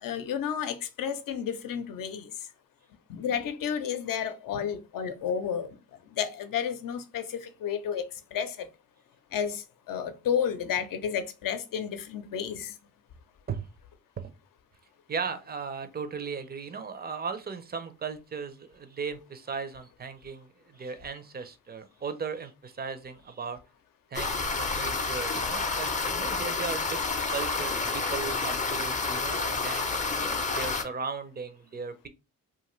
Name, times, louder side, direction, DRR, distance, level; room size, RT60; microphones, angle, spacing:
voice 1, 0.0-2.3 3.1-5.8 6.1-8.7 9.3-12.7, left 8 dB, 60° left, 0.6 m, -31 dB
voice 2, 15.1-23.6 24.1-30.1 30.5-32.1, right 5 dB, 25° right, 0.5 m, -37 dB
sound 1, 24.1-30.8, left 4 dB, 20° left, 0.5 m, -29 dB
2.5 x 2.4 x 3.0 m
supercardioid pair, 65°, 37 cm